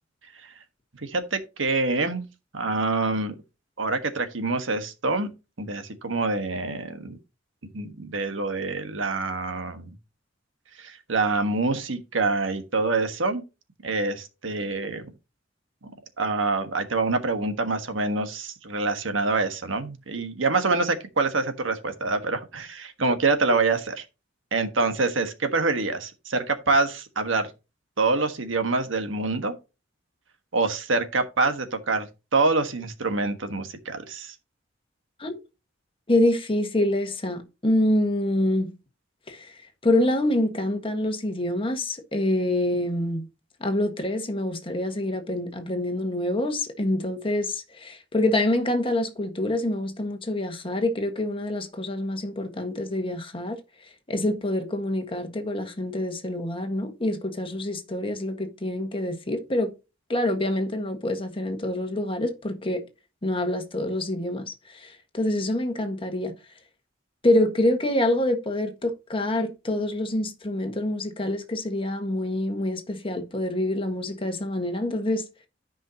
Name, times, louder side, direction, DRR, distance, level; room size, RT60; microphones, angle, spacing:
voice 1, 1.0-2.2 2.5-3.4 3.8-5.3 5.6-7.2 7.7-9.9 10.8-13.4 13.8-15.1 15.8-15.9 16.2-24.0 24.5-27.5 28.0-29.5 30.5-32.1 32.3-34.3, right 3 dB, 85° right, 1.4 m, -26 dB
voice 2, 36.1-38.7 39.3-39.5 39.8-43.3 43.6-53.6 54.1-59.7 60.1-62.8 63.2-66.3 67.2-75.2, left 1 dB, 30° left, 1.5 m, -26 dB
13.5 x 5.5 x 2.8 m
head